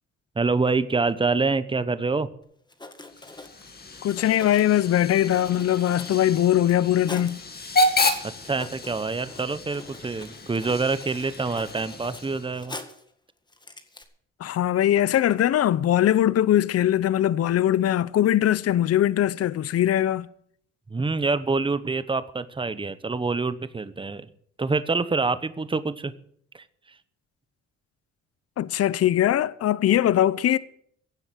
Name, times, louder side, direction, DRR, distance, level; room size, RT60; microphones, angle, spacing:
voice 1, 0.4-2.3 8.4-12.8 20.9-24.3 24.6-26.1, right 4 dB, 15° right, 1.0 m, -26 dB
Writing, 2.4-2.5 2.7-7.4 8.0-8.1 8.4-13.1 13.5-14.0, left 2 dB, 15° left, 1.8 m, -44 dB
Hiss / Train / Alarm, 3.0-12.7, left 2 dB, 30° left, 2.1 m, -31 dB
voice 2, 4.0-7.4 14.4-20.3 28.6-30.6, left 12 dB, 55° left, 0.7 m, -21 dB
16.0 x 7.7 x 7.8 m
cardioid pair, 90°, 30 cm